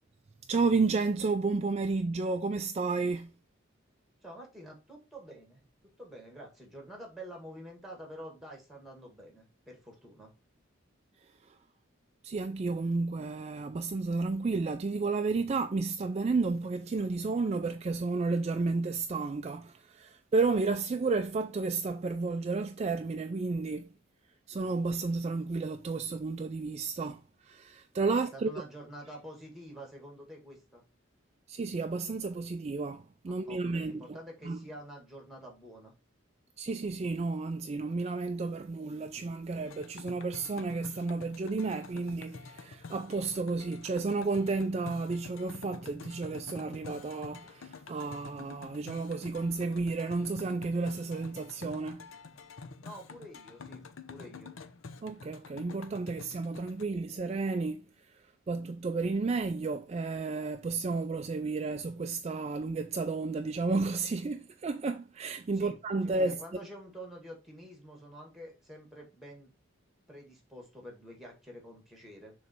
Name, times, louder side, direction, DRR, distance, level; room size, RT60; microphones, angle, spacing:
voice 1, 0.5-3.3 11.4-11.6 12.2-23.9 24.5-28.5 31.5-34.2 34.4-34.6 36.6-52.1 55.0-57.8 58.1-66.4, right 3 dB, 30° right, 0.3 m, -32 dB
voice 2, 4.2-10.3 28.1-30.8 33.3-35.9 52.8-54.5 65.6-65.8 66.0-69.5 70.1-72.3, right 1 dB, ahead, 1.9 m, -48 dB
sound 1, 39.7-56.8, left 4 dB, 80° left, 0.7 m, -48 dB
6.8 x 3.1 x 4.4 m
head